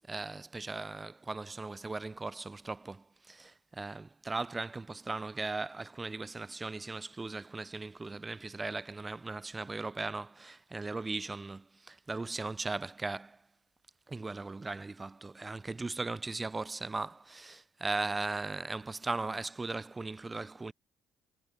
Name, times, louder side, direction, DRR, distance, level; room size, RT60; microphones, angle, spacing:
voice 1, 0.1-13.4 14.1-20.7, right 3 dB, 20° right, 3.4 m, -38 dB
supercardioid pair, 80°, 0 cm